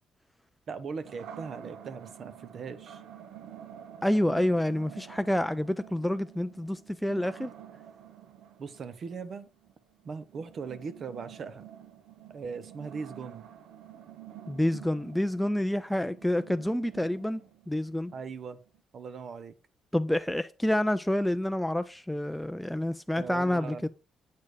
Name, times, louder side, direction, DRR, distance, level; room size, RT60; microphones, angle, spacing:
voice 1, 0.7-3.0 8.6-9.5 10.0-11.6 12.3-13.5 18.1-18.6 18.9-19.5 23.1-23.9, right 5 dB, 55° right, 0.8 m, -39 dB
sound 1, 1.0-18.8, right 10 dB, 80° right, 0.7 m, -49 dB
voice 2, 4.0-7.5 14.5-17.4 17.7-18.1 19.9-23.9, left 1 dB, 5° left, 0.3 m, -28 dB
8.4 x 4.4 x 4.8 m
cardioid pair, 90°, 0 cm